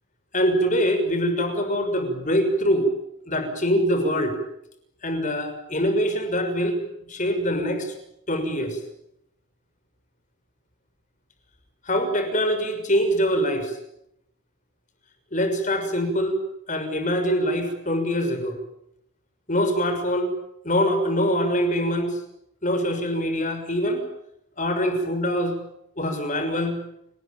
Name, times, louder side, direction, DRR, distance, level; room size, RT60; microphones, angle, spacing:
voice 1, 0.3-2.9 3.3-4.4 5.0-6.8 7.1-7.9 8.3-8.8 11.9-13.7 15.3-16.4 16.7-18.6 19.5-20.3 20.6-22.2 22.6-24.0 24.6-25.6 26.0-26.8, equal, 35° left, 7 dB, 6.2 m, -24 dB
29.0 x 20.5 x 9.2 m, 0.78 s
head